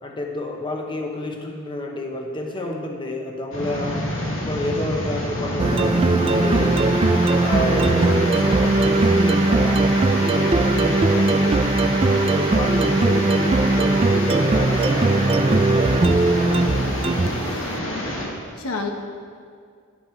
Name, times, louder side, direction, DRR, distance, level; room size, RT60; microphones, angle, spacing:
voice 1, 0.0-4.0 4.5-6.8 7.4-11.6 12.2-17.0, left 1 dB, 25° left, 2 dB, 1.0 m, -30 dB
sound 1, 3.5-18.3, left 1 dB, 60° left, 2.5 m, -28 dB
sound 2, 5.6-17.5, right 2 dB, 25° right, 0.3 m, -19 dB
voice 2, 7.6-8.2 18.6-18.9, left 3 dB, 85° left, 3 dB, 1.1 m, -29 dB
11.0 x 11.0 x 4.5 m, 2.2 s
head